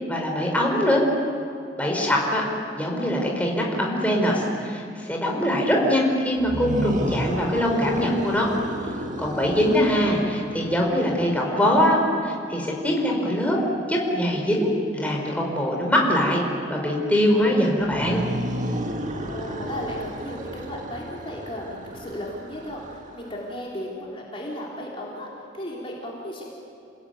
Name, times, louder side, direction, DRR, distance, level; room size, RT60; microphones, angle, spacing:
voice 1, 0.1-1.0 1.8-2.4 2.7-8.5 8.8-13.6 13.9-16.4 16.7-18.2, equal, 10° left, -1 dB, 4.9 m, -23 dB
sound 1, 6.4-11.6 17.8-23.5, right 1 dB, 40° right, 2.0 m, -32 dB
voice 2, 9.5-9.9 19.1-25.3 25.5-26.4, equal, 30° left, -4 dB, 3.8 m, -35 dB
28.5 x 20.5 x 9.4 m, 2.6 s
head